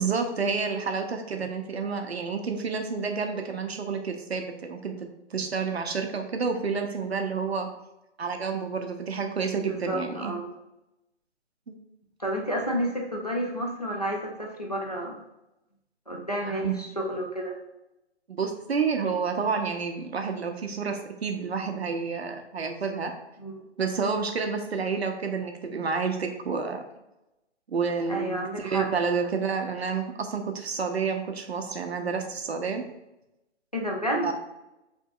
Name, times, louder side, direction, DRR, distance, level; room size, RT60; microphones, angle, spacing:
voice 1, 0.0-7.7 8.2-10.3 11.7-11.8 16.5-16.8 18.3-23.1 23.8-26.8 27.7-32.8 34.2-34.3, right 5 dB, 60° right, 5 dB, 0.6 m, -29 dB
voice 2, 9.7-10.5 12.2-15.2 16.1-17.6 23.4-23.7 28.1-28.9 33.7-34.3, equal, 35° left, -1 dB, 0.4 m, -30 dB
5.2 x 2.9 x 2.4 m, 0.92 s
hypercardioid pair, 180°, 36 cm